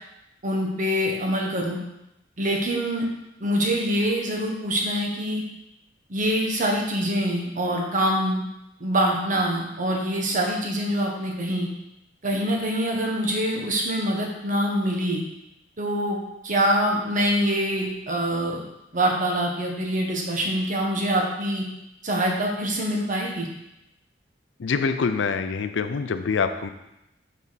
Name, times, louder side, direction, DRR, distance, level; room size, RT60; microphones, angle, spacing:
voice 1, 0.4-1.8 2.4-3.1 3.4-5.4 6.1-8.4 8.8-11.7 12.2-15.2 15.8-16.2 16.4-18.6 18.9-21.6 22.0-23.5, equal, 45° right, 0 dB, 1.2 m, -24 dB
voice 2, 24.6-26.7, left 5 dB, 75° left, 9 dB, 0.4 m, -25 dB
7.5 x 4.1 x 4.0 m, 0.88 s
head